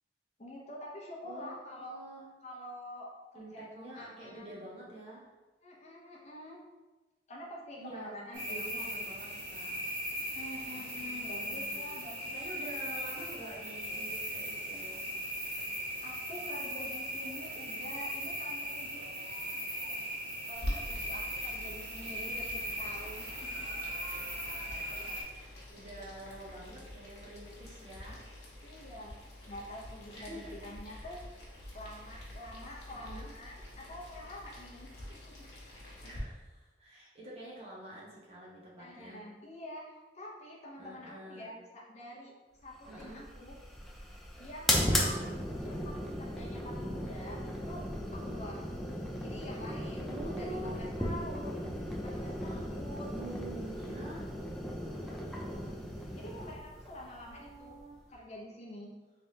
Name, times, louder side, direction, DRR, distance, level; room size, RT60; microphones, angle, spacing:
voice 1, 0.4-1.9 2.4-4.6 5.6-6.6 7.3-8.8 10.3-12.4 16.0-19.1 20.5-23.7 25.0-25.2 28.6-29.2 29.5-31.2 31.7-35.4 38.8-39.9 40.1-42.3 42.6-43.6 44.4-47.8 48.1-48.8 49.2-51.6 51.9-53.2 54.8-55.6 56.1-57.8 58.1-58.9, left 1 dB, 40° left, -4 dB, 0.7 m, -47 dB
voice 2, 1.2-2.2 3.3-5.3 7.8-9.7 11.4-11.7 12.0-15.1 25.7-28.2 30.1-31.1 32.9-33.3 36.0-39.2 40.8-41.5 42.9-43.2 45.0-45.3 50.1-50.7 52.4-52.7 53.1-54.3 57.2-58.0, right 1 dB, 35° right, -6 dB, 1.0 m, -47 dB
sound 1, 8.3-25.2, equal, 65° right, 1.3 m, -38 dB
Boiling, 20.5-36.2, left 1 dB, 70° left, 0.9 m, -46 dB
sound 2, 42.8-58.1, equal, ahead, 0.4 m, -36 dB
3.3 x 3.3 x 2.7 m, 1.2 s
head